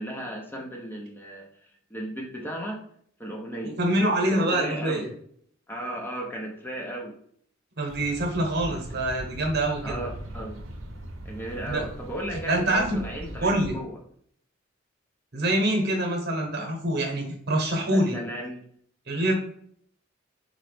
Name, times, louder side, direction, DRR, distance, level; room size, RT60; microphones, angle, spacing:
voice 1, 0.0-2.8 3.2-5.1 5.7-7.2 8.6-9.0 9.8-10.6 11.2-14.0 16.6-16.7 17.8-18.6, right 1 dB, 10° left, 0 dB, 0.5 m, -36 dB
voice 2, 3.6-5.1 7.8-10.0 11.7-11.8 12.5-13.0 13.4-13.8 15.3-18.2 19.1-19.3, right 1 dB, 55° right, 1 dB, 1.0 m, -25 dB
sound 1, 7.9-13.7, right 1 dB, 75° right, 0.7 m, -40 dB
3.9 x 2.9 x 3.3 m, 0.63 s
head